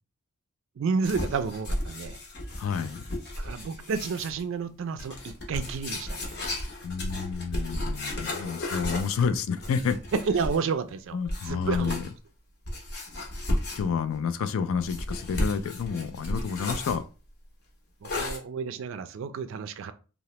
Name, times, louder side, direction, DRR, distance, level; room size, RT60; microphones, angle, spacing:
voice 1, 0.8-2.2 3.4-6.3 10.3-11.2 11.4-11.9 18.0-19.9, right 5 dB, 60° right, 0.3 m, -31 dB
sound 1, 1.0-4.4 5.0-10.7 11.3-12.1 12.7-14.1 14.8-17.0 18.0-18.4, left 1 dB, 50° left, 0.7 m, -33 dB
voice 2, 2.6-3.1 6.8-10.0 11.1-12.0 13.5-17.0, left 6 dB, 65° left, 0.3 m, -29 dB
2.8 x 2.0 x 3.0 m
head